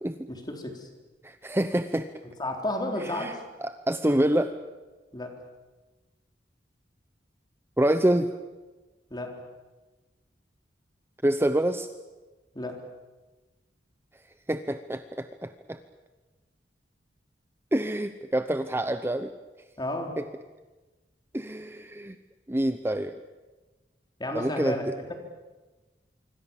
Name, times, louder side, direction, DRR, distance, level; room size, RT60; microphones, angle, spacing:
voice 1, 0.3-0.9 2.4-3.4 5.1-5.4 9.1-9.4 12.5-12.8 19.8-20.1 24.2-25.1, left 1 dB, 25° left, 3 dB, 4.0 m, -32 dB
voice 2, 1.2-2.1 3.0-3.3 3.6-4.5 7.8-8.3 11.2-11.9 14.5-15.8 17.7-19.3 20.2-20.3 21.3-22.2 22.5-23.1 24.3-24.9, right 1 dB, 15° right, 10 dB, 0.8 m, -26 dB
25.5 x 25.0 x 7.3 m, 1.2 s
head